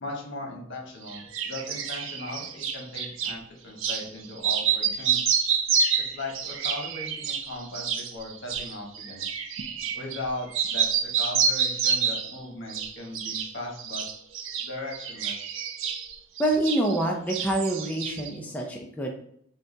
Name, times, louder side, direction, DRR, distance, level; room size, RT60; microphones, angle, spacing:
voice 1, 0.0-5.3 6.1-9.3 9.9-14.0 14.6-15.4, left 2 dB, 65° left, -1 dB, 1.1 m, -38 dB
sound 1, 1.1-3.4 3.8-4.1 4.4-10.3 10.5-12.4 12.7-13.5 13.8-17.0 17.3-18.3, right 6 dB, 75° right, 0.5 m, -28 dB
voice 2, 16.4-19.1, right 1 dB, 10° left, 0 dB, 0.4 m, -26 dB
6.4 x 2.3 x 2.7 m, 0.66 s
head